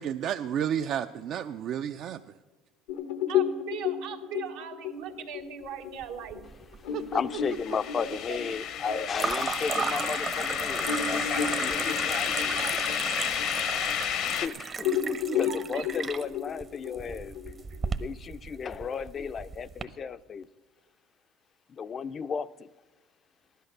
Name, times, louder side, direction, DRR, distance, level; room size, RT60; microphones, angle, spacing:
voice 1, 0.0-2.2 6.9-7.2 15.0-15.6, right 9 dB, 60° right, 0.5 m, -32 dB
sound 1, 2.9-9.9 10.4-10.5 10.8-14.4 14.8-17.9, left 8 dB, 90° left, 1.0 m, -33 dB
voice 2, 3.3-6.5 8.0-9.3 9.7-10.2 10.8-11.8 12.4-12.7 15.3-15.8, right 8 dB, 85° right, 1.5 m, -41 dB
sound 2, 6.0-6.8 7.1-7.7 9.2-19.8, right 5 dB, 35° right, 0.8 m, -35 dB
voice 3, 6.8-12.6 13.9-14.9 15.4-17.4 18.0-20.5 21.7-22.7, left 6 dB, 40° left, 0.4 m, -34 dB
sound 3, 7.4-14.5, left 9 dB, 65° left, 0.8 m, -31 dB
15.0 x 11.0 x 6.6 m
supercardioid pair, 95°, 0 cm